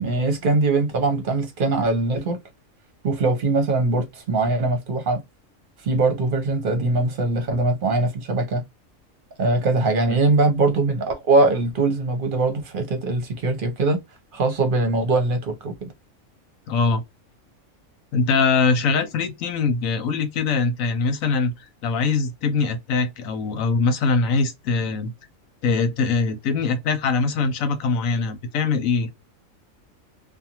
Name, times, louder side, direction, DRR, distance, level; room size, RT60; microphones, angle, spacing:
voice 1, 0.0-2.4 3.0-5.2 5.8-8.6 9.4-14.0 14.3-15.9, right 3 dB, 45° right, 0.9 m, -21 dB
voice 2, 16.7-17.0 18.1-25.1 25.6-29.1, left 4 dB, 80° left, 1.1 m, -22 dB
2.5 x 2.3 x 2.8 m
omnidirectional pair, 1.4 m